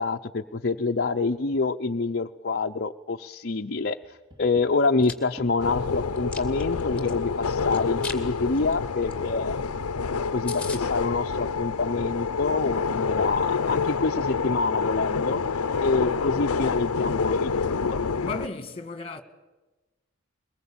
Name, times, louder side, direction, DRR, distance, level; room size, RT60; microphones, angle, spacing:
voice 1, 0.0-9.7 10.3-15.4 15.8-18.0, left 3 dB, 45° left, 0.7 m, -27 dB
Tap, 4.0-5.7 7.7-8.5, right 1 dB, 20° right, 2.6 m, -48 dB
Chewing mastication, 4.8-5.1 5.6-7.1 7.7-8.2 8.5-8.7 9.1-9.2 9.4-9.5 9.9-10.0 10.2-10.3 10.5-10.8, left 4 dB, 5° left, 2.3 m, -37 dB
sound 1, 5.6-18.5, left 5 dB, 85° left, 0.7 m, -27 dB
voice 2, 18.2-19.2, left 3 dB, 25° left, 1.8 m, -34 dB
22.5 x 21.0 x 8.7 m
head